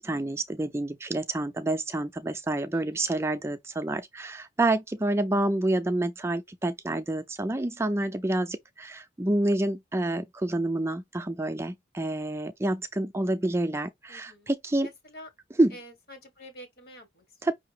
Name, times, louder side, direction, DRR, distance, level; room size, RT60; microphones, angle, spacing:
voice 1, 0.0-14.9 15.6-15.7 17.4-17.5, right 2 dB, 15° right, 0.3 m, -28 dB
voice 2, 2.7-3.1 14.1-14.5 14.8-15.3 15.7-17.5, left 1 dB, 55° left, 1.6 m, -48 dB
5.5 x 2.7 x 3.4 m
head